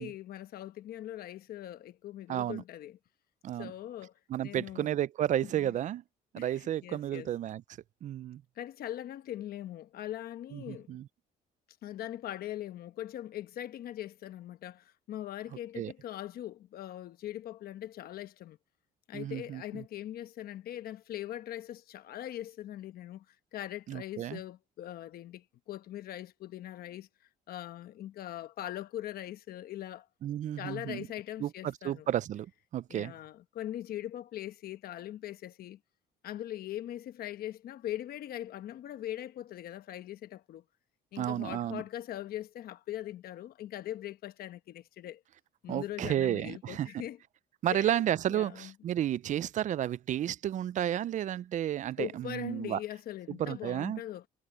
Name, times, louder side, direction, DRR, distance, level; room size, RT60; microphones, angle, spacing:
voice 1, 0.0-3.0 3.6-4.1 4.4-4.9 5.4-5.7 6.4-7.3 8.6-11.0 11.8-18.6 19.1-27.1 27.5-30.1 30.6-32.1 32.9-35.8 36.2-40.6 41.1-45.2 45.6-47.2 47.7-48.0 48.3-48.7 52.0-54.2, left 12 dB, 65° left, 1.1 m, -41 dB
voice 2, 2.3-2.6 3.4-3.7 4.3-6.0 6.3-7.6 8.0-8.4 10.5-11.1 15.8-15.9 19.1-19.8 23.9-24.4 30.2-31.1 31.4-33.1 41.2-41.8 45.7-47.0 47.6-52.8 53.4-54.0, right 11 dB, 45° right, 0.5 m, -32 dB
cardioid pair, 110°, 17 cm